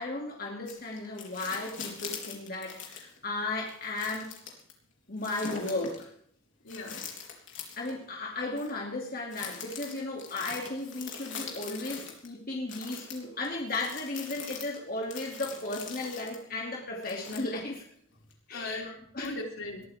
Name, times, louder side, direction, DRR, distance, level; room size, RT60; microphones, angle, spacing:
voice 1, 0.0-4.3 5.1-6.1 7.8-17.8 18.5-19.4, left 2 dB, 45° left, -1 dB, 2.8 m, -35 dB
sound 1, 0.7-3.2 3.7-4.7 5.2-6.0 6.7-7.9 8.6-8.7 9.3-12.3 12.7-16.4 17.0-17.7 18.3-18.4, left 6 dB, 65° left, 3.6 m, -42 dB
voice 2, 6.6-7.0 12.8-12.9 16.0-16.1 18.5-19.9, left 2 dB, 85° left, 0 dB, 4.3 m, -39 dB
20.5 x 14.5 x 3.7 m, 0.62 s
head